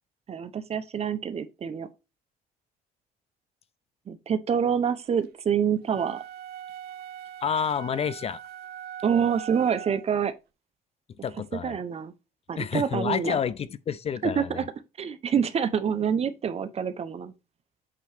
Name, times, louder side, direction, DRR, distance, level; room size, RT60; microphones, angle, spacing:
voice 1, 0.3-1.9 4.1-6.2 9.0-10.3 11.6-12.1 12.5-13.4 14.2-14.6 15.0-17.3, right 7 dB, 35° right, 0.9 m, -26 dB
sound 1, 5.8-10.1, right 10 dB, 70° right, 0.7 m, -41 dB
voice 2, 7.4-8.4 11.2-11.8 12.6-14.6, left 7 dB, 35° left, 0.5 m, -29 dB
8.5 x 3.1 x 4.9 m
cardioid pair, 110°, 17 cm